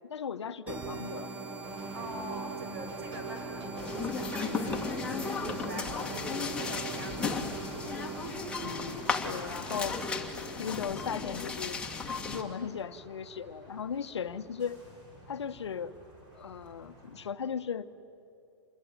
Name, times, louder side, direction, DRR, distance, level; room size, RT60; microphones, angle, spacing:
voice 1, 0.1-1.3 5.9-6.4 8.6-10.0 10.6-11.8 12.2-14.8 15.3-15.9 16.3-17.9, left 7 dB, 70° left, 11 dB, 1.0 m, -37 dB
sound 1, 0.7-10.0, right 4 dB, 10° right, 1.3 m, -41 dB
sound 2, 1.6-17.3, right 1 dB, 30° right, 6.5 m, -50 dB
voice 2, 1.9-7.6, right 1 dB, 50° right, 4 dB, 6.3 m, -43 dB
sound 3, 3.8-12.4, left 4 dB, 5° left, 2.1 m, -35 dB
27.5 x 22.0 x 9.4 m, 2.7 s
figure-of-eight pair, 115°, 15 cm